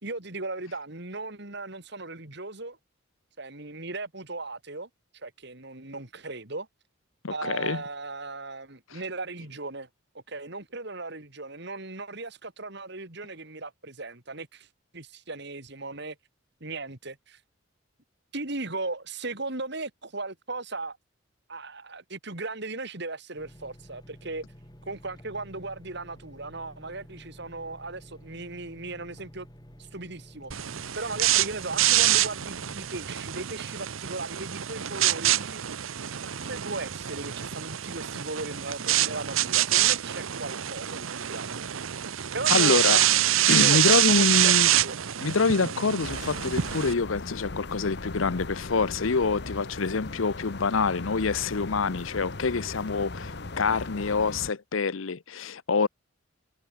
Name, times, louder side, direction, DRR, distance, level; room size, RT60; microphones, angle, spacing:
voice 1, 0.0-2.8 3.4-4.9 5.1-6.7 7.3-9.9 10.3-14.7 14.9-16.2 16.6-17.4 18.3-21.0 21.5-24.4 24.8-29.5 29.8-35.6 36.2-41.8 42.3-43.0 43.5-44.9, right 3 dB, 55° right, 3.4 m, -37 dB
voice 2, 7.2-7.8 8.9-9.0 42.5-43.1 43.5-44.7 45.2-55.9, left 4 dB, 75° left, 0.8 m, -26 dB
sound 1, 23.4-32.9, equal, 20° left, 7.1 m, -51 dB
sound 2, 30.5-46.9, right 13 dB, 85° right, 0.9 m, -26 dB
sound 3, 46.0-54.5, left 2 dB, 55° left, 1.3 m, -38 dB
head